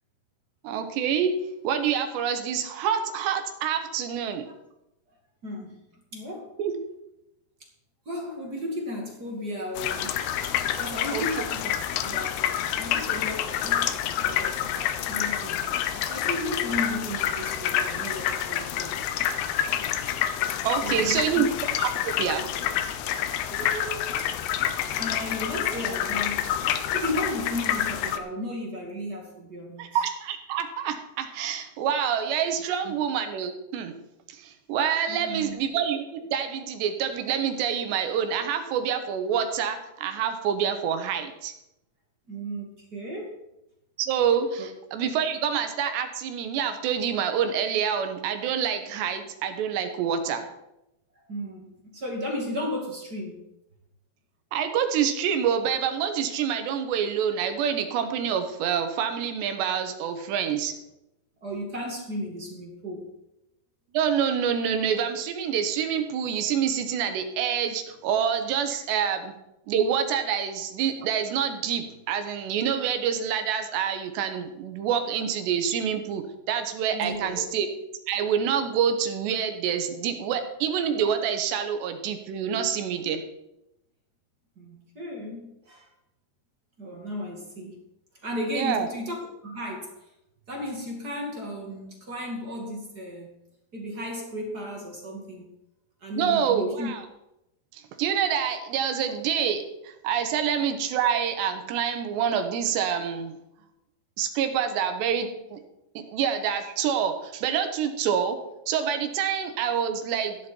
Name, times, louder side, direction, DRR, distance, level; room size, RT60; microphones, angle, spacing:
voice 1, 0.6-1.3 1.6-4.5 6.6-6.7 11.1-11.3 20.7-21.5 21.8-22.5 29.8-33.9 34.3-41.5 44.0-50.5 54.5-60.7 63.9-69.3 69.7-77.7 78.1-83.2 88.6-88.9 96.2-97.0 97.7-103.4 104.2-105.6 106.0-108.4 108.7-110.4, right 8 dB, 85° right, 7 dB, 3.5 m, -27 dB
voice 2, 5.4-5.8 6.1-6.5 8.1-10.2 10.4-11.7 12.0-19.1 20.8-21.4 23.1-24.3 24.9-30.0 32.8-32.9 35.1-35.6 42.3-43.4 44.6-44.7 51.2-53.4 61.4-63.0 76.9-77.4 84.6-85.9 86.8-87.8 88.2-89.9 90.5-93.3 93.7-95.5 96.0-96.9, left 1 dB, 30° right, 0 dB, 2.0 m, -35 dB
sound 1, 9.7-28.2, left 10 dB, 75° left, 2.8 m, -28 dB
15.0 x 11.0 x 4.5 m, 0.88 s
omnidirectional pair, 4.8 m